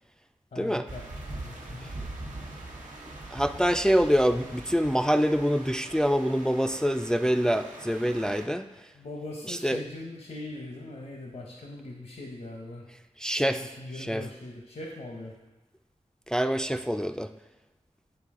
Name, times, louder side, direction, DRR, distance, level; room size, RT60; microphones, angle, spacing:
voice 1, 0.5-1.0 1.3-1.9 8.9-12.9 13.6-15.4, left 2 dB, 75° left, 1 dB, 0.8 m, -41 dB
sound 1, 0.9-8.4, right 2 dB, 90° right, 1.0 m, -42 dB
voice 2, 3.3-8.7 9.6-9.8 13.2-13.7 14.0-14.2 16.3-17.3, equal, 5° left, 8 dB, 0.3 m, -25 dB
9.2 x 4.0 x 3.7 m, 1.2 s
cardioid pair, 50°, 13 cm